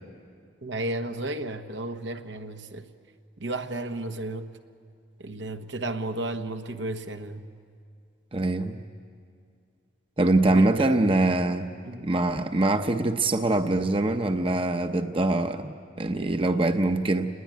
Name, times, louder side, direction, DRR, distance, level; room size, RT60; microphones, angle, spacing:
voice 1, 0.6-2.9 3.4-4.5 5.2-7.4 10.5-11.1 11.9-12.1, right 2 dB, 80° right, 6 dB, 1.3 m, -33 dB
voice 2, 8.3-8.8 10.2-11.7 12.0-17.3, right 2 dB, 30° right, 8 dB, 0.8 m, -24 dB
29.0 x 21.0 x 9.4 m, 2.2 s
head